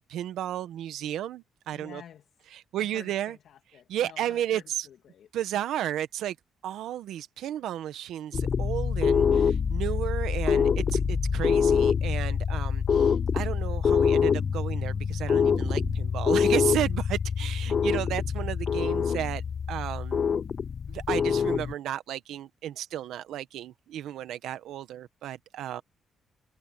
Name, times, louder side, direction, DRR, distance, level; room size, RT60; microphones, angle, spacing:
voice 1, 0.0-2.0 2.5-3.4 3.9-4.9 5.3-6.3 6.6-19.4 19.7-20.2 20.9-25.8, right 11 dB, 80° right, 1.2 m, -33 dB
voice 2, 1.7-2.3 2.8-5.3, left 9 dB, 70° left, 2.2 m, -50 dB
sound 1, 8.3-21.7, left 6 dB, 45° left, 0.4 m, -25 dB
sound 2, 14.4-16.1, right 1 dB, 10° right, 3.4 m, -42 dB
cardioid pair, 90°, 0 cm